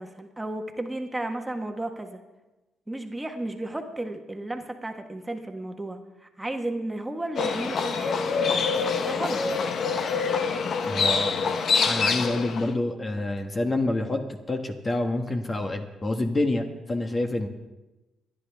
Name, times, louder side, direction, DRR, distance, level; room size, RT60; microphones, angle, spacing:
voice 1, 0.0-2.2 2.9-8.3 9.0-9.4, right 1 dB, 10° right, 4 dB, 1.4 m, -33 dB
Livestock farm animals working animals, 7.4-12.7, left 5 dB, 60° left, 1.0 m, -25 dB
voice 2, 10.9-11.3 11.8-17.5, left 2 dB, 30° left, 5 dB, 1.3 m, -27 dB
26.0 x 10.5 x 3.5 m, 1.1 s
cardioid pair, 90°, 0 cm